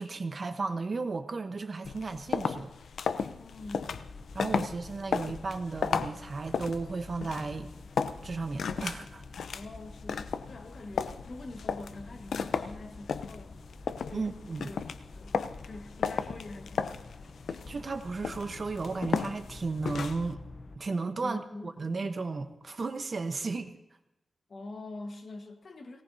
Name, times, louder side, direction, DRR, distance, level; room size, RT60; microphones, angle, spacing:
voice 1, 0.0-2.7 4.3-7.7 8.2-9.2 14.1-14.7 17.7-20.4 20.7-23.7, right 3 dB, 45° right, 8 dB, 1.0 m, -34 dB
sound 1, 1.8-20.3, left 6 dB, 80° left, 0.6 m, -35 dB
voice 2, 3.4-4.0 9.5-13.6 14.1-14.3 14.6-14.8 15.1-15.4 15.6-17.1 21.2-21.7 24.5-26.0, left 2 dB, 50° left, 4 dB, 1.5 m, -44 dB
sound 2, 3.6-20.8, left 3 dB, 35° left, 0.8 m, -49 dB
19.0 x 18.0 x 2.7 m, 0.92 s
wide cardioid pair, 110°, 0 cm